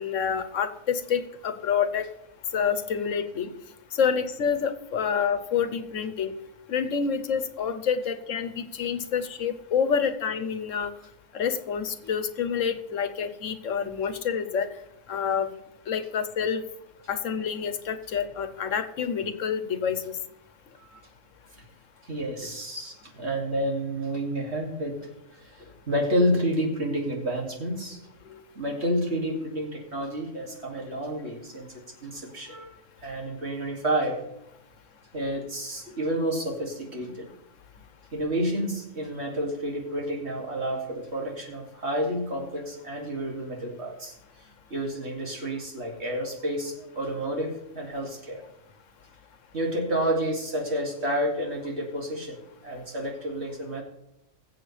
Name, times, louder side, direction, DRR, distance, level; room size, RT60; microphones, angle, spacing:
voice 1, 0.0-2.0 2.5-3.5 3.9-6.3 6.7-10.9 11.3-14.7 15.1-15.5 15.9-16.6 17.1-20.2, left 7 dB, 85° left, 10 dB, 1.3 m, -28 dB
voice 2, 22.0-32.8 33.0-34.2 35.1-37.3 38.1-44.1 44.7-48.4 49.5-53.8, equal, 60° right, 0 dB, 2.7 m, -30 dB
21.5 x 7.8 x 3.3 m, 0.85 s
omnidirectional pair, 1.3 m